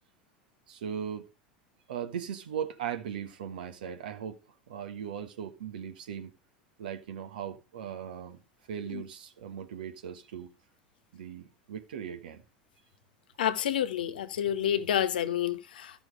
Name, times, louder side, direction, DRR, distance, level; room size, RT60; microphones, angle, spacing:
voice 1, 0.7-1.3 1.9-4.4 4.7-6.3 6.8-8.4 8.7-10.5 11.1-12.4, right 8 dB, 80° right, 1.3 m, -38 dB
voice 2, 13.4-16.0, left 10 dB, 80° left, 1.0 m, -29 dB
12.5 x 6.0 x 4.7 m
hypercardioid pair, 90°, 5 cm